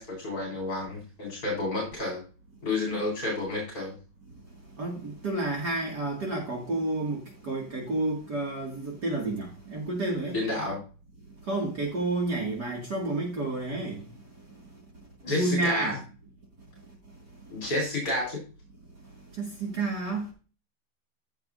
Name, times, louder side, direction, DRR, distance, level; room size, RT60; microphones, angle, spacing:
voice 1, 0.0-2.2 2.6-3.9 10.3-10.8 15.2-16.0 17.5-18.4, left 2 dB, 45° left, 4.7 m, -30 dB
voice 2, 4.8-10.4 11.5-14.1 15.3-16.0 19.4-20.3, right 2 dB, 55° right, 2.8 m, -30 dB
15.5 x 6.6 x 2.6 m
omnidirectional pair, 2.2 m